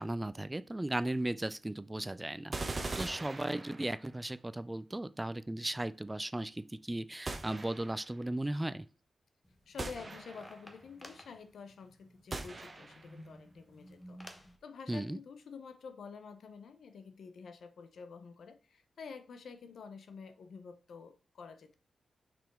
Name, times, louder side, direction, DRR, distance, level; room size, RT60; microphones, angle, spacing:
voice 1, 0.0-8.8 14.9-15.2, right 1 dB, 15° right, 0.3 m, -36 dB
sound 1, 2.5-4.2 7.3-8.1 9.8-10.7 12.3-13.2, right 2 dB, 30° right, 0.9 m, -41 dB
sound 2, 9.4-14.6, equal, 15° left, 0.9 m, -55 dB
voice 2, 9.7-21.8, left 5 dB, 75° left, 0.7 m, -49 dB
6.0 x 5.0 x 3.6 m
wide cardioid pair, 135°, 0 cm